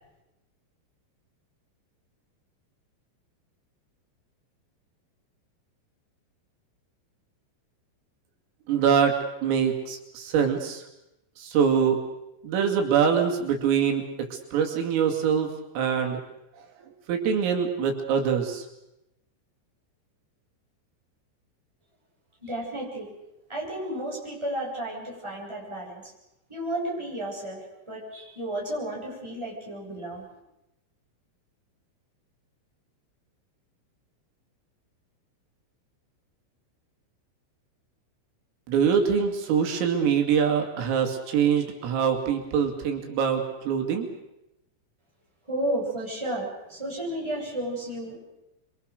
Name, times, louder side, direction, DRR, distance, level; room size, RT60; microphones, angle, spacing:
voice 1, 8.7-10.9 11.4-12.0 12.4-16.2 16.5-16.7 17.1-18.7 38.7-44.1, right 7 dB, 80° right, 3 dB, 5.0 m, -24 dB
voice 2, 22.4-23.1 23.5-26.1 26.5-30.3 45.5-48.2, right 1 dB, 5° right, -3 dB, 7.5 m, -32 dB
27.5 x 24.5 x 6.6 m, 0.90 s
omnidirectional pair, 5.9 m